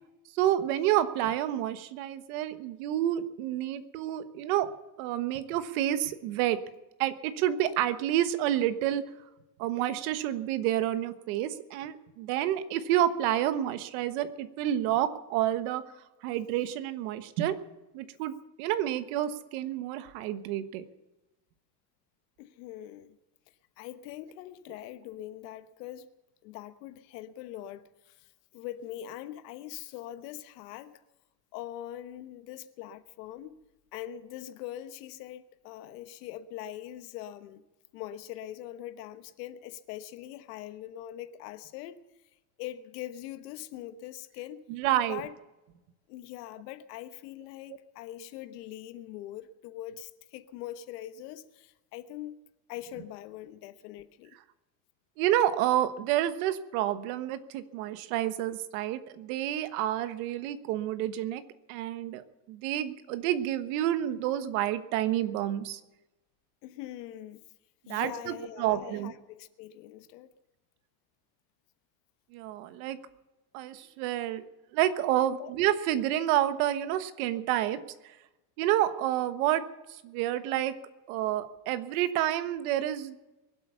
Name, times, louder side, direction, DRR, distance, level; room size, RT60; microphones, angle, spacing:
voice 1, 0.3-4.7 5.0-6.6 7.0-9.0 9.6-15.8 16.2-17.6 17.9-18.3 18.6-20.8 44.7-45.2 55.2-61.4 61.7-62.2 62.5-65.8 67.9-69.1 72.3-73.0 73.5-74.4 74.7-77.8 78.6-79.6 80.0-80.7 81.1-83.2, right 12 dB, 60° right, 1.3 m, -29 dB
voice 2, 22.4-23.2 23.8-26.1 26.4-28.3 28.5-31.0 31.5-33.6 33.9-37.6 37.9-42.0 42.6-44.6 45.1-45.4 46.1-52.3 52.7-54.4 66.6-67.4 67.9-70.3 75.4-75.5, left 12 dB, 85° left, 1.3 m, -42 dB
22.5 x 8.3 x 6.9 m
cardioid pair, 170°, 47 cm